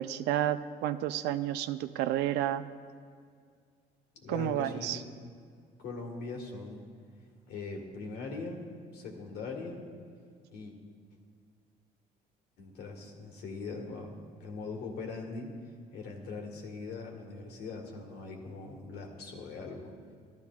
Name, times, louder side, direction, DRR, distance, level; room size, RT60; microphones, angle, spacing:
voice 1, 0.0-2.6 4.3-5.0, right 12 dB, 90° right, 12 dB, 0.4 m, -31 dB
voice 2, 4.1-5.1 5.8-6.8 7.5-8.7 8.9-9.8 10.5-10.8 12.6-14.1 14.4-15.6 15.9-19.9, left 3 dB, 75° left, 2 dB, 1.6 m, -41 dB
12.5 x 11.5 x 2.4 m, 2.1 s
cardioid pair, 110°, 17 cm